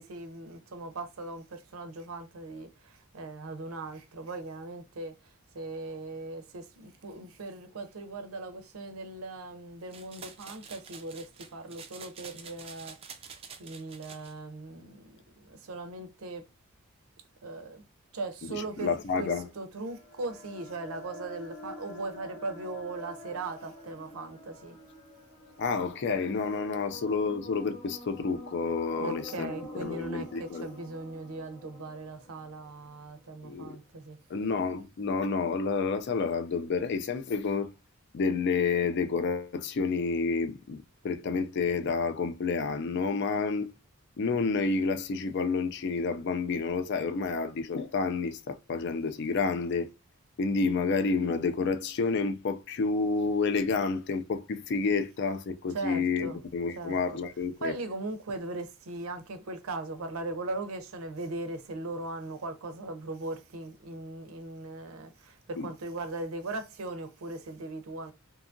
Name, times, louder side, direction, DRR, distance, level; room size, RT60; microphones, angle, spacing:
voice 1, 0.0-16.4 17.4-17.8 18.1-24.8 29.0-34.2 55.7-56.4 56.8-57.0 57.6-68.1, right 2 dB, 80° right, 0.5 m, -39 dB
sound 1, 9.9-14.3, right 6 dB, 25° right, 0.3 m, -47 dB
voice 2, 18.5-19.5 25.6-30.8 33.4-33.8 34.3-37.7 38.1-40.8 41.0-43.7 44.2-49.9 50.4-57.7 65.6-65.7, left 4 dB, 55° left, 0.4 m, -29 dB
sound 2, 19.5-33.4, equal, 30° left, 0.8 m, -48 dB
2.7 x 2.3 x 2.5 m
head